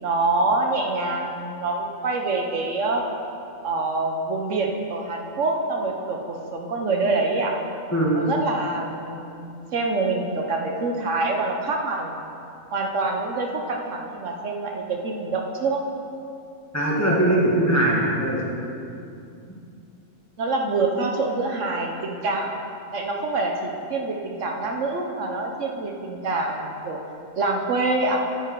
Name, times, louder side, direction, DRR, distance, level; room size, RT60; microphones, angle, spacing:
voice 1, 0.0-3.0 3.6-7.6 8.1-12.2 12.7-15.8 20.4-22.5 22.9-27.0 27.4-28.2, right 3 dB, 65° right, 2 dB, 1.1 m, -26 dB
voice 2, 16.7-18.6, right 1 dB, 10° left, -5 dB, 1.4 m, -21 dB
9.8 x 8.7 x 4.6 m, 2.6 s
omnidirectional pair, 1.4 m